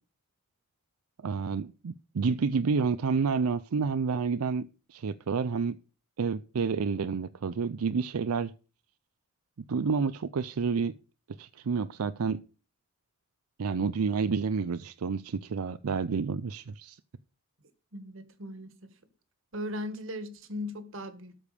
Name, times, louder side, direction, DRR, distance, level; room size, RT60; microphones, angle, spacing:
voice 1, 1.2-5.8 6.2-8.5 9.7-11.0 11.4-12.4 13.6-17.0, right 5 dB, 85° right, 0.5 m, -29 dB
voice 2, 17.9-18.7 19.5-21.4, left 1 dB, 60° right, 1.7 m, -38 dB
13.0 x 5.2 x 6.7 m
head